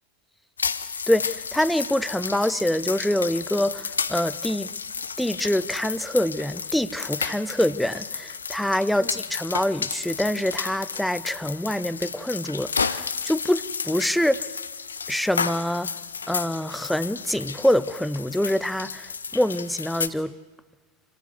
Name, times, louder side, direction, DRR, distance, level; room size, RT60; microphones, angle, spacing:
sound 1, 0.6-20.1, left 6 dB, 70° left, 0.8 m, -32 dB
voice 1, 1.1-4.7 5.2-14.4 15.1-15.9 16.3-20.3, left 1 dB, ahead, 0.6 m, -25 dB
26.5 x 14.0 x 8.1 m
figure-of-eight pair, 90°, 0 cm